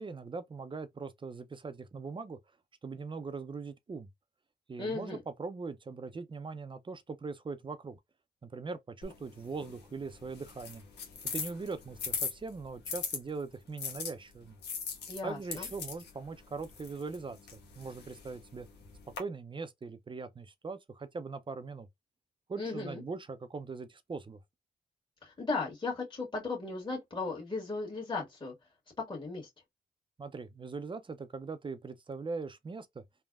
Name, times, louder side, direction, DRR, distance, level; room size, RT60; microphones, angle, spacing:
voice 1, 0.0-2.4 2.8-4.1 4.7-8.0 8.4-10.8 11.3-14.6 15.2-18.7 19.2-21.9 22.5-24.4 30.2-33.0, right 4 dB, 30° right, 0.5 m, -41 dB
voice 2, 4.8-5.2 15.1-15.7 22.6-23.0 25.2-28.5 29.1-29.5, left 3 dB, 25° left, 1.4 m, -36 dB
sound 1, 9.0-13.2 13.8-19.2, left 6 dB, 85° left, 0.8 m, -41 dB
3.3 x 2.1 x 2.3 m
cardioid pair, 60°, 17 cm